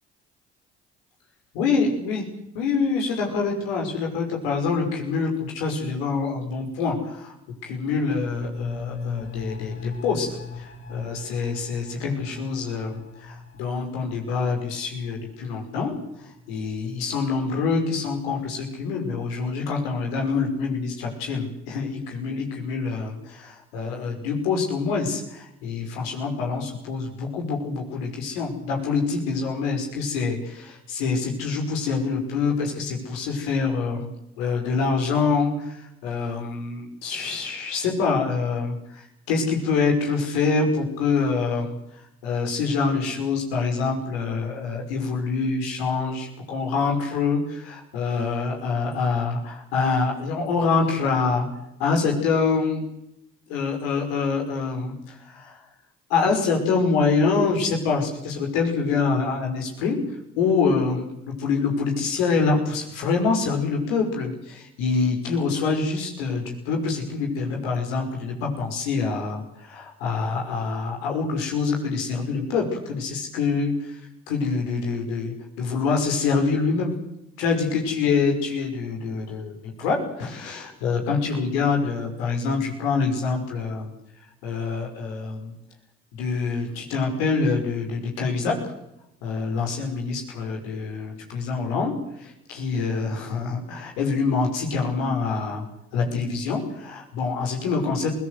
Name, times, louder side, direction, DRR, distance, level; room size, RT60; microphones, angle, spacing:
voice 1, 1.5-2.3 2.5-7.3 7.6-34.1 34.4-41.8 42.2-51.5 51.8-52.8 53.5-55.6 56.1-60.0 60.4-76.9 77.4-83.9 84.4-85.5 86.1-88.7 89.2-95.7 95.9-98.1, left 4 dB, 85° left, 2 dB, 5.8 m, -26 dB
sound 1, 7.7-17.1 17.4-17.5, left 5 dB, 45° left, 6.7 m, -39 dB
22.5 x 17.5 x 8.1 m, 0.84 s
hypercardioid pair, 55°, 29 cm